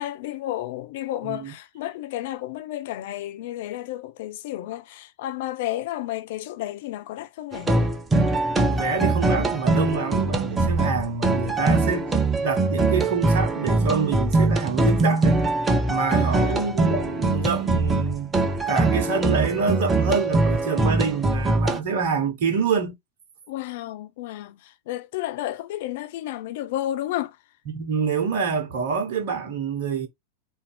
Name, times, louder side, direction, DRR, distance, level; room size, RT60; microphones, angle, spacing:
voice 1, 0.0-7.9 16.1-16.7 23.5-27.4, left 14 dB, 50° left, 0.5 m, -32 dB
sound 1, 7.5-21.8, right 2 dB, 15° right, 0.8 m, -22 dB
voice 2, 8.7-15.4 15.9-18.4 18.7-22.9 27.7-30.1, right 5 dB, 50° right, 1.2 m, -26 dB
4.4 x 2.6 x 4.2 m
figure-of-eight pair, 90°, 0 cm